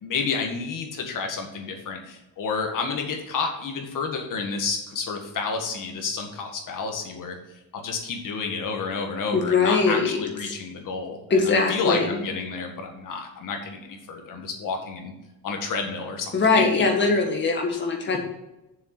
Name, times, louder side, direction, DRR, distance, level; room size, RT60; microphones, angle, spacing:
voice 1, 0.0-7.4 7.7-15.1 15.4-16.8 17.7-17.8 18.1-18.2, left 4 dB, 50° left, 3 dB, 1.8 m, -30 dB
voice 2, 9.3-10.2 10.5-10.6 11.3-12.2 16.3-18.2, left 4 dB, 25° left, 1 dB, 1.8 m, -21 dB
7.2 x 6.9 x 6.7 m, 0.96 s
cardioid pair, 175°, 41 cm